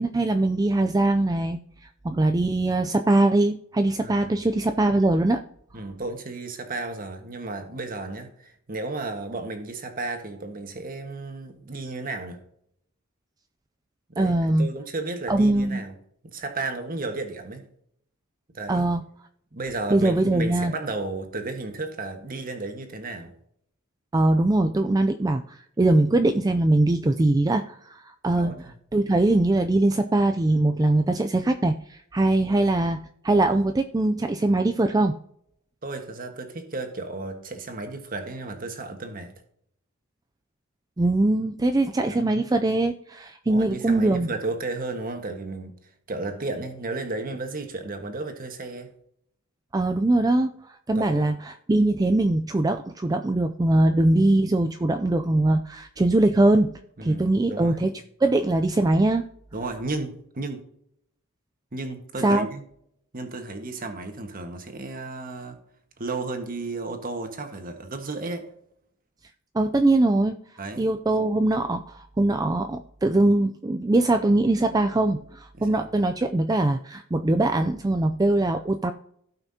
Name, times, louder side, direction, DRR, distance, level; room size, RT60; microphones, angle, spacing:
voice 1, 0.0-1.6 2.0-5.4 14.2-14.7 15.3-15.8 18.7-19.0 19.9-20.7 24.1-28.5 28.9-33.0 33.2-35.2 41.0-44.3 49.7-56.7 57.0-57.9 58.2-59.2 62.2-62.5 69.5-70.4 70.8-78.9, right 2 dB, 15° right, 7 dB, 0.4 m, -22 dB
voice 2, 4.0-4.3 5.7-12.4 14.1-15.9 16.2-17.7 18.5-18.9 19.5-23.3 28.3-28.7 32.4-32.7 35.8-39.3 42.1-42.4 43.4-45.7 46.1-48.9 50.9-51.3 57.0-57.8 59.5-60.6 61.7-62.6 63.1-65.6 66.0-68.5 70.6-70.9 75.6-75.8, right 3 dB, 40° right, 6 dB, 1.5 m, -33 dB
16.5 x 5.8 x 2.8 m, 0.70 s
head